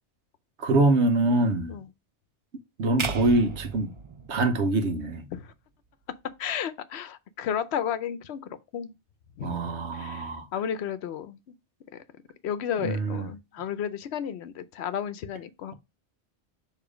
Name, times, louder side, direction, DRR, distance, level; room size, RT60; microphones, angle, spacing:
voice 1, 0.6-1.8 2.8-3.9 4.3-5.3 9.4-10.5 12.8-13.3, right 2 dB, 75° right, 1.2 m, -24 dB
sound 1, 3.0-5.3, right 5 dB, 40° right, 0.5 m, -35 dB
voice 2, 6.4-8.9 9.4-11.5 11.9-12.0 12.4-15.7, left 8 dB, 70° left, 0.9 m, -33 dB
6.8 x 3.1 x 4.9 m
omnidirectional pair, 1.2 m